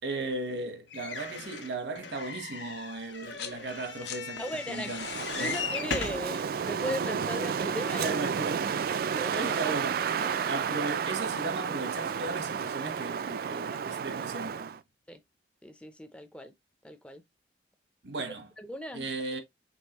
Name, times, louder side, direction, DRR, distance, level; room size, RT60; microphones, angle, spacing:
voice 1, 0.0-5.1 5.4-5.6 8.0-8.7 9.3-9.9 10.5-14.8 18.0-18.5 18.9-19.4, right 3 dB, 80° right, 1.0 m, -36 dB
sound 1, 0.9-6.3 7.0-7.1 7.3-7.4, left 5 dB, 85° left, 1.0 m, -38 dB
sound 2, 3.1-3.6 3.9-8.7 10.0-10.1, left 7 dB, 65° left, 0.8 m, -44 dB
voice 2, 4.4-5.0 5.4-8.1 9.1-9.7 10.1-10.4 13.6-14.1 15.1-15.2 15.6-16.5 16.8-17.2 18.6-19.1, equal, 5° left, 0.5 m, -38 dB
Wind, 4.9-14.8, right 7 dB, 55° right, 0.3 m, -32 dB
5.4 x 3.3 x 2.9 m
head